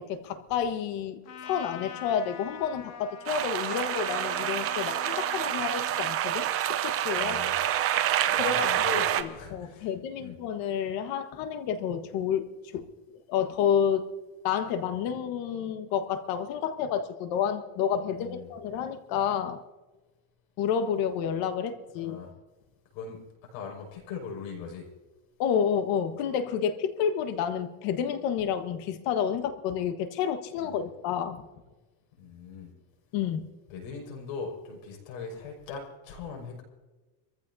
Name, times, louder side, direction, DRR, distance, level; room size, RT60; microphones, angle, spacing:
voice 1, 0.0-7.4 8.3-8.8 9.2-12.5 12.7-12.9 13.3-14.1 14.4-19.6 20.6-22.2 25.4-31.5 33.1-33.5, left 8 dB, 60° left, 9 dB, 1.5 m, -30 dB
Trumpet, 1.2-6.2, left 7 dB, 40° left, 1.5 m, -43 dB
sound 1, 3.3-9.2, right 11 dB, 35° right, 0.8 m, -27 dB
voice 2, 7.2-7.6 8.3-9.9 10.2-10.4 18.1-18.5 22.0-22.3 22.9-23.2 23.5-24.9 30.6-30.9 32.2-32.7 33.7-36.6, left 5 dB, 85° left, 0 dB, 5.9 m, -40 dB
26.5 x 15.0 x 2.8 m, 1.2 s
cardioid pair, 145°, 40 cm